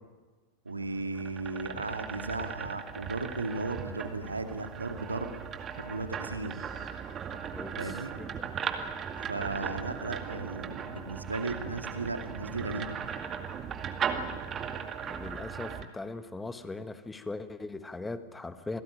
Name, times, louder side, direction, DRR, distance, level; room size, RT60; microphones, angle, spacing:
voice 1, 0.7-5.4 5.8-6.6 7.8-8.1 9.2-13.1, right 3 dB, 80° right, 7 dB, 2.2 m, -36 dB
sound 1, 0.8-15.8, right 7 dB, 25° right, 2.2 m, -38 dB
voice 2, 15.1-18.8, left 3 dB, 10° left, 11 dB, 1.6 m, -39 dB
27.5 x 18.0 x 10.0 m, 1.4 s
figure-of-eight pair, 90°, 0 cm